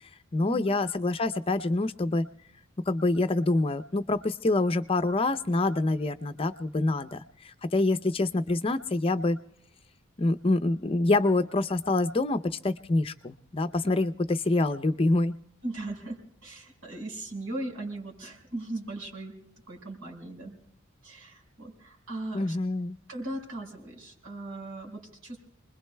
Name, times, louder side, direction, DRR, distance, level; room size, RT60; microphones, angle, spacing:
voice 1, 0.3-2.3 2.9-7.2 7.4-9.4 10.2-15.3 22.3-23.0, left 2 dB, 25° left, 10 dB, 0.5 m, -26 dB
voice 2, 15.6-19.3 19.7-20.5 21.0-22.5 23.1-25.4, right 2 dB, 85° right, 1 dB, 5.1 m, -38 dB
29.0 x 21.0 x 2.2 m, 0.71 s
head